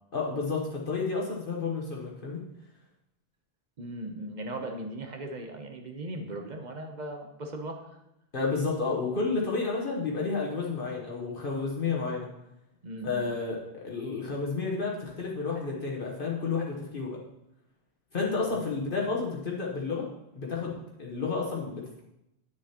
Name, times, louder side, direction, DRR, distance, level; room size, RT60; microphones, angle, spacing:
voice 1, 0.1-2.4 8.3-12.3 13.0-17.2 18.1-22.0, left 4 dB, 60° left, -3 dB, 1.3 m, -31 dB
voice 2, 3.8-8.0 12.8-13.2 18.5-18.6, right 1 dB, 45° right, 4 dB, 0.9 m, -38 dB
9.5 x 6.4 x 2.9 m, 0.84 s
omnidirectional pair, 1.1 m